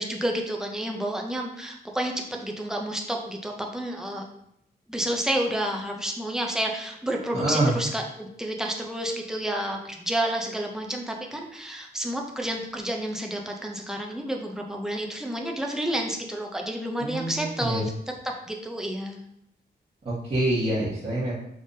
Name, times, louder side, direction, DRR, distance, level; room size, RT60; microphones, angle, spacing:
voice 1, 0.0-4.2 4.9-17.9 18.5-19.2, right 1 dB, 5° right, 1 dB, 0.6 m, -30 dB
voice 2, 7.3-7.8 17.0-17.9 20.0-21.3, right 1 dB, 35° right, -10 dB, 1.3 m, -26 dB
5.2 x 3.4 x 2.7 m, 0.76 s
wide cardioid pair, 130°, 17 cm